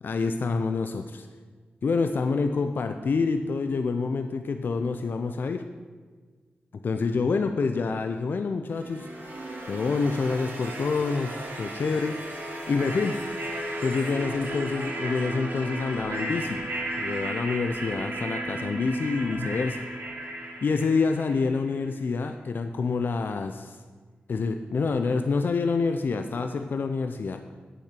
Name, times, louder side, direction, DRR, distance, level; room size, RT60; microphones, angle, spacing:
voice 1, 0.0-1.3 1.8-5.6 6.7-9.1 9.7-12.1 12.7-13.2 13.8-16.6 17.0-19.8 20.6-23.8 24.3-27.4, left 4 dB, 65° left, 7 dB, 0.5 m, -27 dB
sound 1, 8.8-21.7, right 1 dB, 85° right, 2.6 m, -34 dB
8.5 x 7.1 x 5.8 m, 1.5 s
cardioid pair, 70°, 4 cm